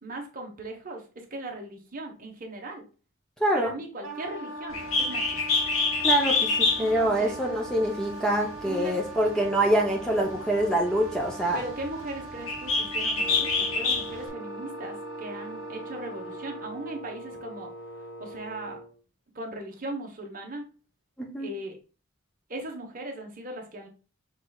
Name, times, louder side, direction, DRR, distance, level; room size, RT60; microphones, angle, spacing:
voice 1, 0.0-2.9 3.5-5.4 6.8-7.4 8.4-9.0 9.3-9.4 11.5-17.7 18.0-18.8 19.3-20.6 21.4-21.8 22.5-23.9, right 1 dB, 40° right, 2 dB, 1.1 m, -38 dB
voice 2, 3.4-3.7 6.0-11.6 21.2-21.5, right 1 dB, 5° left, -1 dB, 0.7 m, -25 dB
Wind instrument woodwind instrument, 4.0-16.9, right 2 dB, 75° right, 1.3 m, -41 dB
Bird, 4.7-14.3, left 4 dB, 90° left, 1.1 m, -28 dB
Wind instrument woodwind instrument 2, 13.2-18.9, right 1 dB, 65° left, 0.7 m, -41 dB
6.4 x 3.3 x 2.3 m, 0.35 s
head